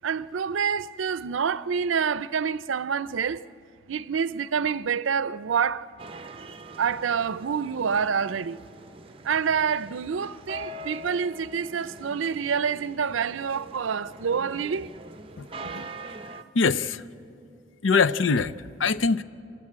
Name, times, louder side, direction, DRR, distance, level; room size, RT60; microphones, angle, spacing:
voice 1, 0.0-3.4 3.9-5.9 6.8-8.6 9.2-14.9, right 6 dB, 85° right, 0.5 m, -27 dB
sound 1, 6.0-16.4, right 1 dB, 30° right, 0.6 m, -43 dB
voice 2, 15.4-15.9 16.5-17.0 17.8-18.5 18.8-19.2, left 4 dB, 85° left, 0.6 m, -23 dB
29.5 x 13.5 x 8.7 m
head